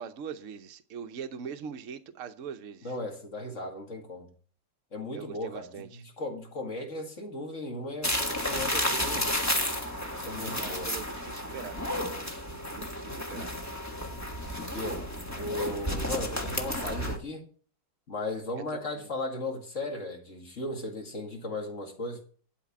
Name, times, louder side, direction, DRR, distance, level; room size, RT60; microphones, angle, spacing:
voice 1, 0.0-2.9 5.1-6.0 10.4-11.8 12.6-13.5 18.7-19.1, right 7 dB, 55° right, 1.1 m, -42 dB
voice 2, 2.8-4.3 4.9-9.5 10.2-10.9 14.7-15.0 15.4-17.5 18.1-22.2, left 2 dB, 40° left, 2.4 m, -36 dB
sound 1, 8.0-17.2, left 1 dB, 10° left, 1.2 m, -32 dB
11.5 x 5.0 x 8.5 m
omnidirectional pair, 2.0 m